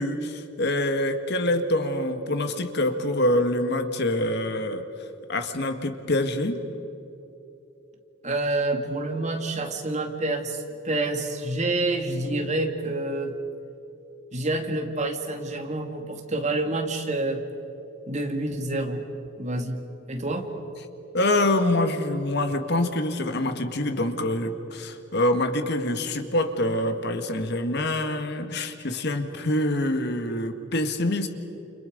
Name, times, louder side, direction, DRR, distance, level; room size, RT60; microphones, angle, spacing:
voice 1, 0.0-4.8 5.3-6.6 21.1-31.3, left 1 dB, 60° left, 7 dB, 1.8 m, -25 dB
voice 2, 8.2-13.3 14.3-17.4 18.1-19.0 19.4-19.8 20.1-20.5, right 2 dB, 35° right, 4 dB, 2.4 m, -28 dB
29.5 x 29.5 x 5.3 m, 3.0 s
head